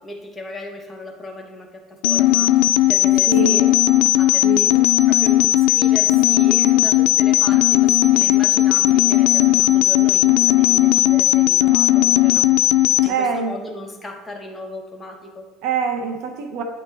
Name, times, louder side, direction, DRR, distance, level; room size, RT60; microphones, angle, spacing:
voice 1, 0.0-2.5 2.9-3.7 4.1-4.7 5.1-12.5 13.0-15.5, left 2 dB, 15° left, 1 dB, 0.9 m, -36 dB
sound 1, 2.0-13.1, left 16 dB, 80° left, 0.3 m, -16 dB
voice 2, 3.3-3.8 4.4-4.8 13.0-13.6 15.6-16.6, right 6 dB, 70° right, 3 dB, 0.6 m, -25 dB
9.4 x 4.0 x 3.4 m, 1.2 s
cardioid pair, 135°, 0 cm